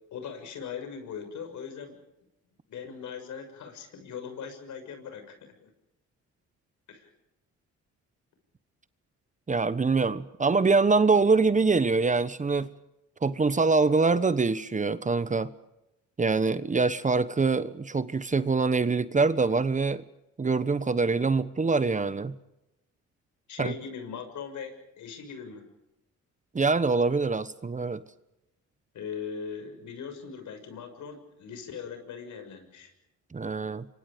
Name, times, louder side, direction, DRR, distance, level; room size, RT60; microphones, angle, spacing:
voice 1, 0.1-2.0 2.7-5.7 6.9-7.1 23.5-25.7 28.9-32.9, left 6 dB, 75° left, 6.7 m, -40 dB
voice 2, 9.5-12.7 13.2-15.5 16.2-20.0 20.4-22.3 23.6-23.7 26.5-28.0 33.3-33.9, right 4 dB, 25° right, 1.1 m, -24 dB
28.0 x 24.5 x 5.2 m
cardioid pair, 90°, 30 cm